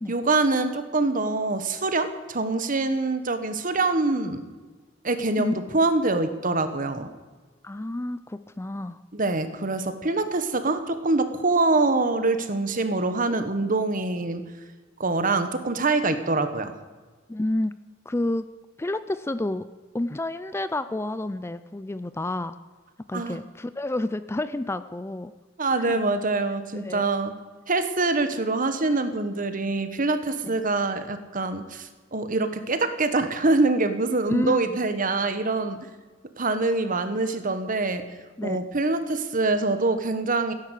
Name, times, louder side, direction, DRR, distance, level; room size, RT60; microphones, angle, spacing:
voice 1, 0.1-4.4 5.0-7.1 9.1-14.4 15.0-16.7 23.1-23.4 25.6-27.3 27.7-35.8 36.4-38.1 38.4-40.5, right 3 dB, 45° right, 10 dB, 1.4 m, -25 dB
voice 2, 7.6-9.0 17.3-17.8 18.1-18.5 18.8-19.7 19.9-22.6 23.1-25.3 25.8-26.0 26.7-27.0 34.3-34.8 38.4-38.7, left 1 dB, 15° left, 13 dB, 0.4 m, -29 dB
16.0 x 11.0 x 8.2 m, 1.4 s
head